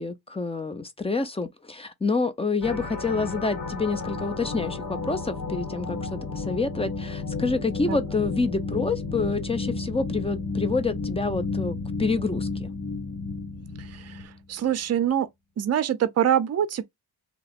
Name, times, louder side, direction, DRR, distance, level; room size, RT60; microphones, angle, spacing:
voice 1, 0.0-12.7, left 3 dB, 15° left, 0.6 m, -28 dB
sound 1, 2.6-14.4, left 3 dB, 50° left, 1.9 m, -32 dB
voice 2, 13.8-15.3 15.6-16.8, right 10 dB, 40° right, 0.6 m, -25 dB
2.9 x 2.1 x 4.2 m
cardioid pair, 85°, 39 cm